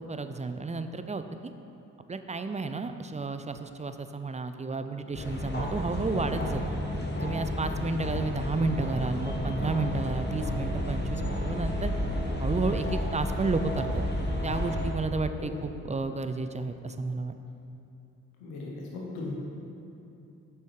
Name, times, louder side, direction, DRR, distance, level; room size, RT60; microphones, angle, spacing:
voice 1, 0.1-1.5 2.1-6.6 7.2-11.9 12.4-14.0 14.4-17.3, right 3 dB, 20° right, 9 dB, 0.5 m, -32 dB
sound 1, 5.1-14.9, left 1 dB, 25° left, 1.5 m, -31 dB
voice 2, 18.4-19.3, left 3 dB, 90° left, -3 dB, 1.2 m, -38 dB
7.6 x 5.4 x 4.9 m, 2.8 s
hypercardioid pair, 45°, 37 cm